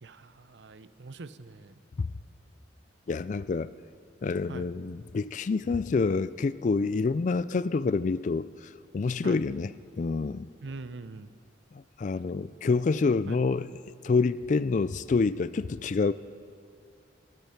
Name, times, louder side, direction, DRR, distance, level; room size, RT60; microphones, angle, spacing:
voice 1, 0.0-1.8 4.5-4.7 9.2-9.4 10.6-11.3 13.3-13.4, right 3 dB, 75° right, 13 dB, 0.6 m, -43 dB
voice 2, 3.1-3.7 4.2-8.5 8.9-9.7 10.0-10.5 12.0-13.7 14.0-16.1, left 4 dB, 45° left, 17 dB, 0.3 m, -27 dB
18.5 x 12.5 x 5.8 m, 2.3 s
head